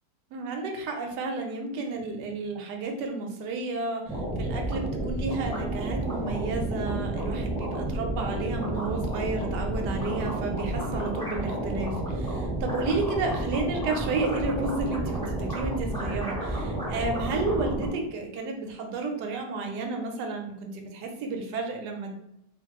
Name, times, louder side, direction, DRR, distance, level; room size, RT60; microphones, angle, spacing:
voice 1, 0.3-22.2, right 3 dB, 75° right, 3 dB, 1.1 m, -32 dB
sound 1, 4.1-17.9, right 1 dB, 5° left, 0.5 m, -31 dB
2.5 x 2.5 x 2.9 m, 0.81 s
omnidirectional pair, 1.9 m